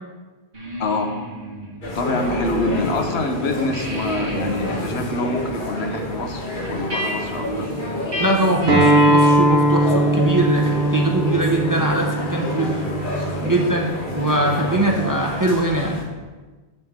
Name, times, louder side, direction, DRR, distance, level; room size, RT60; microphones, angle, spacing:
sound 1, 0.5-3.0 3.3-9.5, equal, 45° right, 1.8 m, -33 dB
voice 1, 0.8-1.1 1.9-7.7, left 2 dB, 75° left, 5 dB, 1.1 m, -26 dB
sound 2, 1.8-16.0, left 1 dB, 50° left, 1.5 m, -28 dB
voice 2, 8.2-12.9 13.4-13.9 14.1-16.0, right 1 dB, 20° right, 1 dB, 0.6 m, -21 dB
Acoustic guitar, 8.7-13.9, right 1 dB, 60° right, 1.3 m, -19 dB
8.6 x 6.8 x 3.6 m, 1.3 s
omnidirectional pair, 1.1 m